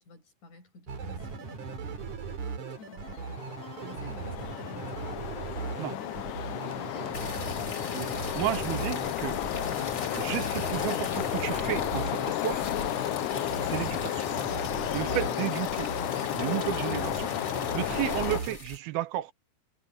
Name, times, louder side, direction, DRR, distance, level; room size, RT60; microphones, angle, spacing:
voice 1, 0.0-5.3 5.9-7.6, left 1 dB, 55° left, 7.3 m, -51 dB
sound 1, 0.9-18.6, right 5 dB, 55° right, 4.3 m, -38 dB
sound 2, 2.8-18.4, left 15 dB, 80° left, 1.9 m, -32 dB
sound 3, 7.1-18.8, left 3 dB, 25° left, 3.4 m, -42 dB
voice 2, 7.9-9.4 10.1-12.7 13.6-14.2 14.9-15.9 16.3-17.3 17.7-19.3, right 14 dB, 90° right, 3.0 m, -33 dB
omnidirectional pair, 4.2 m